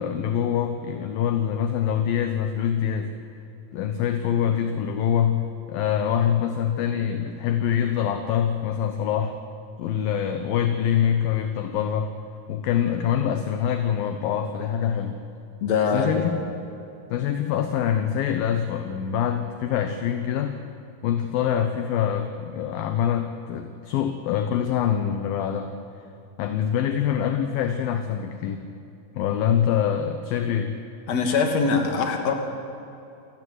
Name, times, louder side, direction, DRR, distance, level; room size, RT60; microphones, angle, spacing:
voice 1, 0.0-3.1 3.7-9.3 9.8-12.1 12.5-15.2 15.9-16.4 17.1-20.6 21.0-25.7 26.4-28.6 29.1-30.8, left 9 dB, 70° left, 7 dB, 2.4 m, -25 dB
voice 2, 15.6-16.2 31.1-32.3, left 5 dB, 45° left, 4 dB, 3.1 m, -22 dB
28.5 x 18.5 x 8.2 m, 2.7 s
omnidirectional pair, 5.2 m